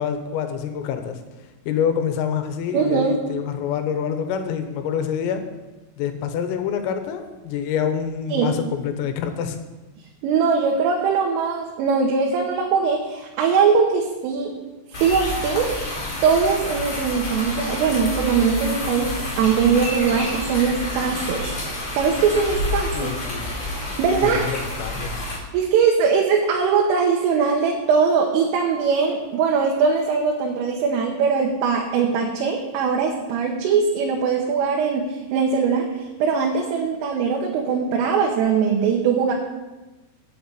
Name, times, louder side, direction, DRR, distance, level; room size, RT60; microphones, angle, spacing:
voice 1, 0.0-5.4 6.0-9.6 22.9-23.5 24.2-25.2, left 8 dB, 85° left, 7 dB, 3.7 m, -26 dB
voice 2, 2.7-3.2 8.3-8.5 10.2-14.5 15.0-15.7 16.2-21.5 22.0-23.1 23.7-24.4 25.5-35.9 36.2-39.3, right 5 dB, 80° right, -1 dB, 3.7 m, -21 dB
sound 1, 14.9-25.4, left 2 dB, 35° left, 5.3 m, -29 dB
8.6 x 8.5 x 8.2 m, 1.1 s
omnidirectional pair, 5.8 m